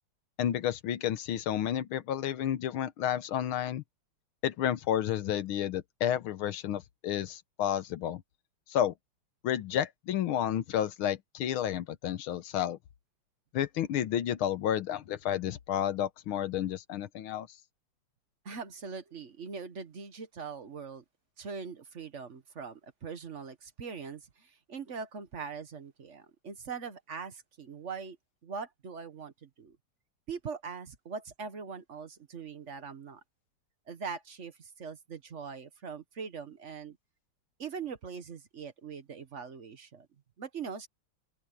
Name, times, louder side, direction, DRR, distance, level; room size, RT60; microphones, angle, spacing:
voice 1, 0.4-3.8 4.4-8.2 8.7-8.9 9.4-12.8 13.5-17.5, left 10 dB, 75° left, 1.7 m, -31 dB
voice 2, 18.4-21.0 21.4-28.2 28.4-29.8 30.3-33.2 33.9-37.0 37.6-40.1 40.4-40.9, right 5 dB, 40° right, 1.3 m, -42 dB
open air
omnidirectional pair, 2.4 m